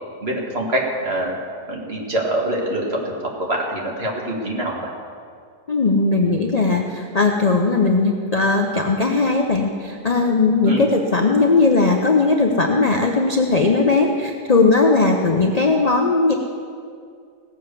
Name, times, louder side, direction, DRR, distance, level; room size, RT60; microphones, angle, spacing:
voice 1, 0.2-1.4 1.7-4.8 10.6-10.9, right 1 dB, 40° right, -2 dB, 2.2 m, -24 dB
voice 2, 5.7-16.3, left 3 dB, 35° left, 2 dB, 0.7 m, -18 dB
17.5 x 7.7 x 6.8 m, 2.2 s
omnidirectional pair, 1.7 m